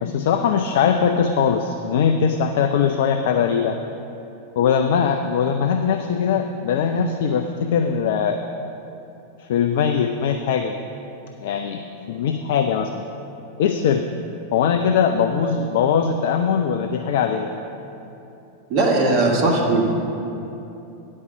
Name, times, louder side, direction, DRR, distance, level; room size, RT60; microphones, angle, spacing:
voice 1, 0.0-3.8 4.6-8.4 9.4-10.8 11.4-13.0 13.6-14.1 14.5-17.5, left 7 dB, 55° left, 6 dB, 0.4 m, -21 dB
voice 2, 18.7-19.9, right 2 dB, 40° right, -1 dB, 1.7 m, -18 dB
9.4 x 5.4 x 6.9 m, 2.9 s
figure-of-eight pair, 90°, 0 cm